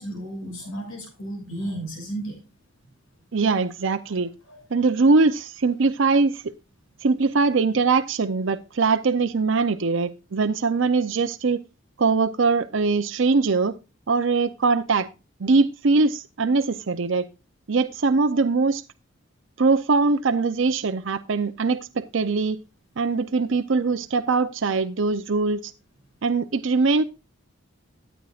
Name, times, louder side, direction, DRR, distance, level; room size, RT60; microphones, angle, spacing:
voice 1, 0.0-2.4 4.1-4.6 7.4-7.5, right 1 dB, 85° left, 6.7 m, -34 dB
voice 2, 3.3-4.3 4.7-6.5 7.0-11.6 12.0-13.8 14.1-15.1 15.4-17.3 17.7-18.8 19.6-22.6 23.0-25.7 26.2-27.0, right 4 dB, 65° right, 0.6 m, -22 dB
14.5 x 8.9 x 2.4 m
head